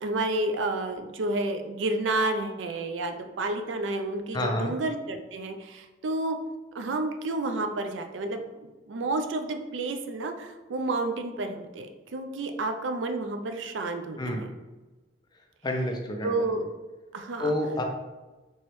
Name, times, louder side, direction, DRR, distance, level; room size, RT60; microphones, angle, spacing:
voice 1, 0.0-6.4 6.7-14.5 16.2-16.6 17.1-17.5, right 2 dB, 90° right, 6 dB, 0.4 m, -30 dB
voice 2, 4.3-4.7 14.2-14.5 15.6-16.4 17.4-17.8, left 1 dB, 25° left, 1 dB, 0.5 m, -29 dB
4.4 x 3.0 x 3.0 m, 1.2 s
head